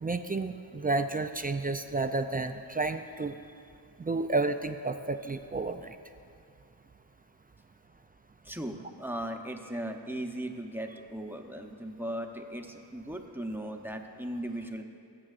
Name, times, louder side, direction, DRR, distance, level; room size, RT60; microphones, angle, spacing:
voice 1, 0.0-3.4 4.0-5.9, right 3 dB, 25° right, 8 dB, 0.3 m, -31 dB
voice 2, 8.4-14.8, right 1 dB, 5° right, 3 dB, 0.7 m, -37 dB
22.0 x 7.6 x 2.5 m, 2.4 s
wide cardioid pair, 80°, 41 cm